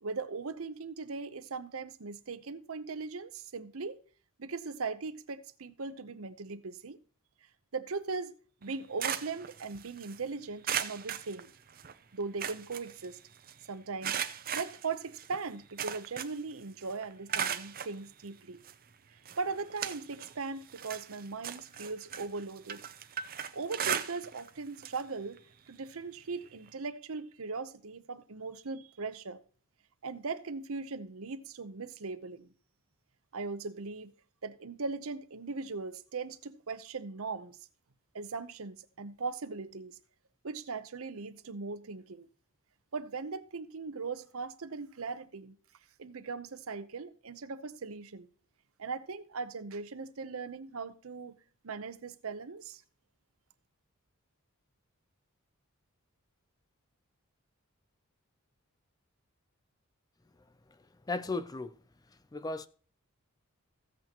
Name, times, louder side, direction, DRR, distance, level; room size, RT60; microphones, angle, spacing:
voice 1, 0.0-4.0 4.4-7.0 7.7-11.5 12.1-13.2 13.7-18.6 19.1-22.9 23.5-25.4 25.7-29.4 30.0-32.5 33.3-34.1 34.4-37.6 38.1-40.0 40.4-42.3 42.9-45.6 46.0-48.3 48.8-51.4 51.6-52.8, right 4 dB, 70° right, 0.8 m, -39 dB
sound 1, 8.6-10.2 10.6-11.9 12.2-13.5 14.0-16.5 16.8-17.9 18.6-18.7 19.2-20.4 20.7-24.5 24.8-25.0 25.4-25.5 26.7-26.8, right 8 dB, 40° right, 0.6 m, -37 dB
voice 2, 60.7-61.8 62.1-62.7, left 3 dB, 15° left, 0.4 m, -37 dB
15.0 x 8.3 x 2.9 m
head